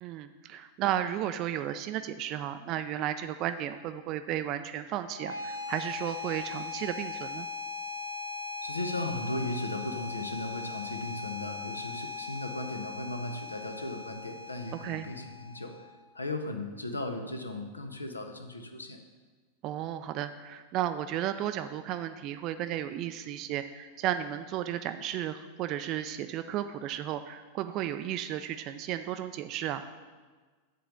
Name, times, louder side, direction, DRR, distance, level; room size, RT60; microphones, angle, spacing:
voice 1, 0.0-7.5 14.8-15.1 19.6-29.9, right 11 dB, 40° right, 9 dB, 0.3 m, -34 dB
sound 1, 5.1-16.1, left 4 dB, 80° right, 0.9 m, -39 dB
voice 2, 8.6-15.7 16.1-19.0, left 2 dB, 80° left, 6 dB, 0.6 m, -36 dB
7.6 x 3.9 x 6.6 m, 1.4 s
figure-of-eight pair, 90°, 0 cm